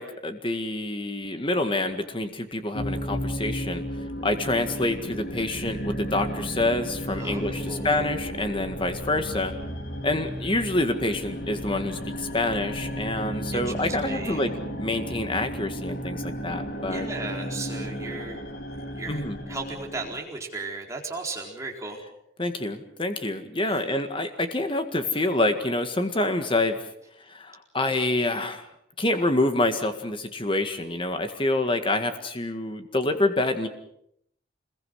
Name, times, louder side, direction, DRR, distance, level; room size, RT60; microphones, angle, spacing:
voice 1, 0.0-3.8 4.2-9.5 10.0-14.5 14.8-17.1 19.1-19.4 22.4-26.8 27.3-28.7 29.0-33.7, left 2 dB, 25° left, 7 dB, 1.9 m, -27 dB
sound 1, 2.7-20.2, equal, 55° left, 3.1 m, -34 dB
voice 2, 7.2-8.1 13.5-14.5 16.9-18.4 18.7-19.2 19.5-22.0 23.7-23.8, right 3 dB, 15° right, 0 dB, 4.3 m, -36 dB
26.5 x 21.5 x 6.5 m, 0.73 s
head